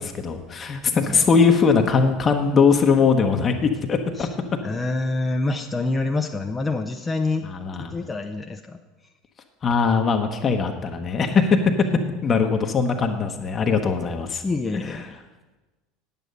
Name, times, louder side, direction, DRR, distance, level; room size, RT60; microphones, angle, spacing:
voice 1, 0.0-4.3 7.5-8.0 9.6-11.6 12.2-14.4 14.9-15.0, left 5 dB, 35° left, 4 dB, 1.1 m, -20 dB
voice 2, 4.6-7.5 7.8-8.8 14.4-15.0, left 3 dB, 15° left, 3 dB, 0.6 m, -26 dB
9.0 x 8.4 x 5.4 m, 1.1 s
hypercardioid pair, 80°, 0 cm